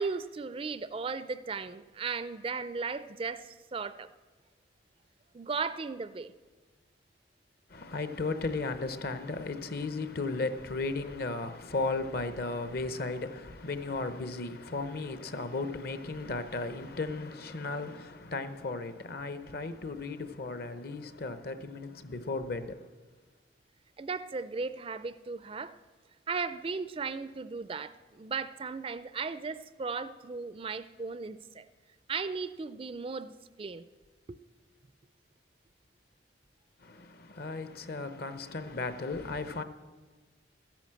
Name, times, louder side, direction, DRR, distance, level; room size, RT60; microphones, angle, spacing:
voice 1, 0.0-4.1 5.3-6.3 24.0-25.7 26.3-31.6 32.1-33.8 34.3-34.4, right 4 dB, 30° right, 0.4 m, -36 dB
voice 2, 7.7-22.8 36.8-39.6, left 3 dB, 55° left, 0.8 m, -35 dB
13.0 x 10.5 x 7.6 m
head